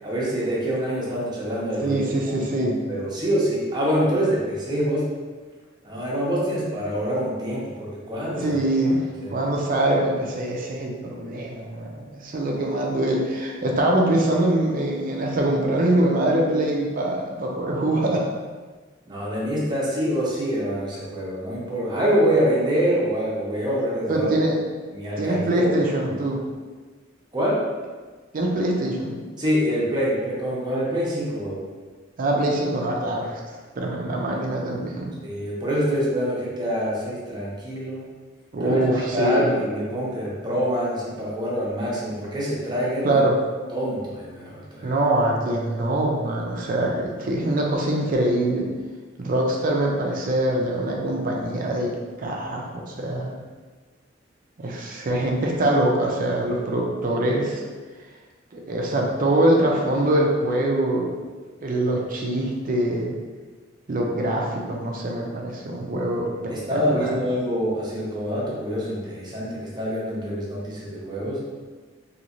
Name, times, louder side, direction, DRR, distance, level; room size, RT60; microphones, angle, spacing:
voice 1, 0.0-2.0 2.3-5.1 5.8-8.6 9.2-9.3 19.1-24.3 24.9-25.7 27.3-27.6 29.4-31.6 35.2-38.1 38.6-38.8 39.1-43.2 43.7-44.9 66.5-71.4, equal, 25° right, -6 dB, 0.8 m, -25 dB
voice 2, 1.8-2.8 8.4-9.0 9.3-18.3 24.1-24.6 25.2-26.4 28.3-29.2 32.2-33.4 33.8-35.1 38.5-39.5 43.0-43.4 44.8-48.7 49.2-51.9 52.2-53.4 54.6-57.6 58.5-61.1 61.6-63.2 63.9-67.2, right 1 dB, 45° right, -1 dB, 0.5 m, -23 dB
3.1 x 2.8 x 2.6 m, 1.4 s
head